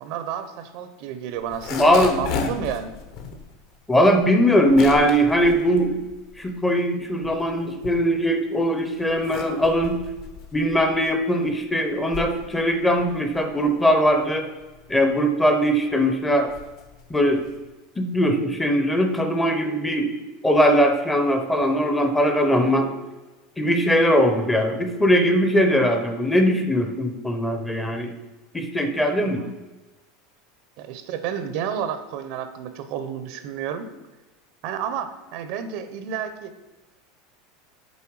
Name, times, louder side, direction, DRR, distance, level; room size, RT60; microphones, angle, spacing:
voice 1, 0.0-2.9 29.2-29.5 30.8-33.9 34.6-36.5, right 8 dB, 55° right, 10 dB, 0.6 m, -31 dB
sound 1, 1.4-6.7 7.0-8.5 8.9-17.7, left 5 dB, 50° left, 1.0 m, -36 dB
voice 2, 1.7-2.5 3.9-6.0 6.4-10.0 10.5-14.5 14.9-16.5 17.1-17.4 18.0-20.1 20.4-22.9 23.6-28.1 28.5-29.4, equal, 10° left, 5 dB, 0.6 m, -20 dB
7.1 x 4.3 x 4.7 m, 1.1 s
supercardioid pair, 155°, 0 cm